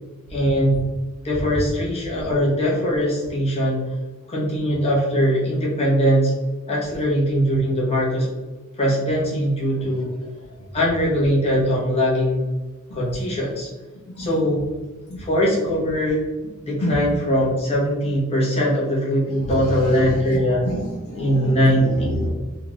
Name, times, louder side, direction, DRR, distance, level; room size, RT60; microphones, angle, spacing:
voice 1, 0.3-0.9 1.2-3.9 4.3-6.3 6.7-8.3 8.8-10.1 10.7-12.5 12.9-13.7 14.2-14.7 15.2-16.2 16.6-20.6 21.2-22.3, equal, 30° left, -5 dB, 1.0 m, -21 dB
voice 2, 19.4-20.0 20.6-22.3, equal, 80° left, -3 dB, 1.3 m, -28 dB
3.6 x 2.4 x 3.0 m, 1.2 s
head